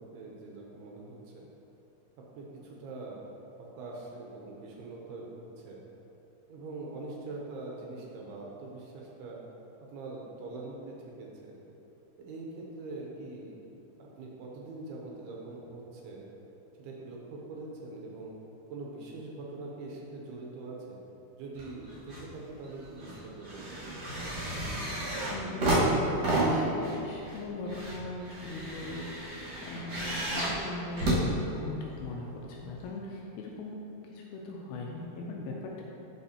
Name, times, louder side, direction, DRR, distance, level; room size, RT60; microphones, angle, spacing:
voice 1, 0.0-1.5 2.4-3.2 3.6-5.8 6.5-9.4 9.9-11.6 12.2-13.6 14.0-16.2 16.8-18.3 18.7-21.0 21.4-23.8, right 2 dB, 75° right, -2 dB, 2.7 m, -43 dB
sound 1, 21.6-22.3 22.6-32.0 32.8-32.9, right 1 dB, 55° right, 2.1 m, -31 dB
voice 2, 25.3-33.8 34.0-35.8, left 2 dB, 80° left, -2 dB, 2.3 m, -40 dB
12.0 x 4.4 x 2.8 m, 2.9 s
omnidirectional pair, 4.8 m